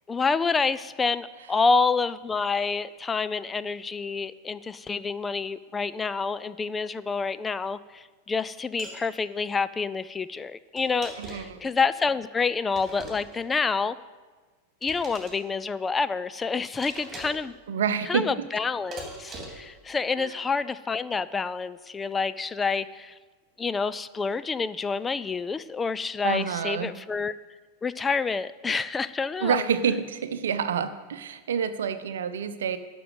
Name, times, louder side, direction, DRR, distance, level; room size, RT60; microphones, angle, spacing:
voice 1, 0.1-14.0 14.8-17.5 18.1-23.1 23.6-27.3 27.8-29.6, left 4 dB, 15° left, 15 dB, 0.3 m, -28 dB
sound 1, 8.8-9.0 10.8-11.6 12.7-13.5 14.8-15.4 16.8-17.5 18.9-19.7, right 2 dB, 20° right, 3.2 m, -41 dB
voice 2, 11.2-11.6 17.7-18.3 20.2-20.3 26.2-26.9 29.4-32.8, right 7 dB, 60° right, 12 dB, 0.7 m, -28 dB
11.5 x 6.1 x 8.0 m, 1.3 s
figure-of-eight pair, 90°, 0 cm